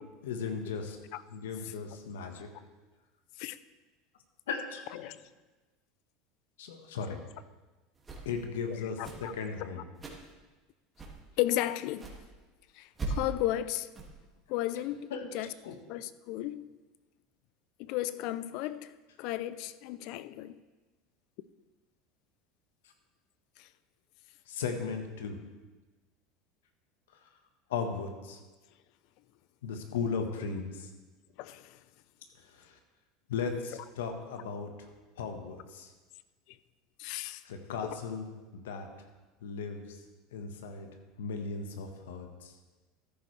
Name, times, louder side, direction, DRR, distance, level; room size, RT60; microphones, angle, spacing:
voice 1, 0.2-1.0 1.3-2.5 4.5-5.1 6.6-7.2 8.2-9.8 15.1-15.3 15.6-15.8 24.5-25.4 27.2-27.3 27.7-28.4 29.6-30.9 32.4-32.8 33.3-34.9 35.2-35.9 37.4-38.3 38.5-38.9 39.4-40.0 40.3-40.9 41.2-42.5, left 5 dB, 90° left, 6 dB, 1.3 m, -36 dB
sound 1, 7.9-8.4 8.9-9.3 9.9-10.3 10.9-11.2 11.9-12.2 12.9-13.3 13.9-14.1, right 3 dB, 20° right, 2.2 m, -39 dB
voice 2, 8.7-9.3 11.4-12.1 12.7-13.9 14.5-15.5 15.9-16.7 17.8-18.9 19.2-20.6 23.6-23.7 31.4-31.8 37.0-37.4 37.8-38.0, left 14 dB, 65° left, 15 dB, 0.5 m, -34 dB
13.5 x 10.5 x 3.3 m, 1.2 s
supercardioid pair, 105°, 0 cm